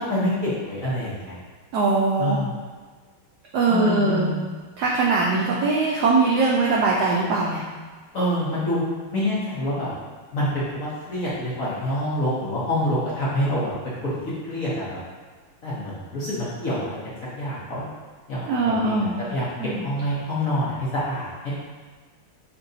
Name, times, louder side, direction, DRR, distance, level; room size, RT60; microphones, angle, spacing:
voice 1, 0.0-1.4 2.2-2.5 3.7-4.4 8.1-8.8 9.1-9.9 10.3-15.0 15.6-17.0 17.3-17.9 18.3-21.5, equal, 55° left, -8 dB, 1.0 m, -27 dB
voice 2, 1.7-2.4 3.5-4.4 4.8-7.6 18.5-19.2 19.6-19.9, right 3 dB, 80° right, -3 dB, 0.9 m, -21 dB
5.6 x 2.6 x 2.6 m, 1.5 s
omnidirectional pair, 2.2 m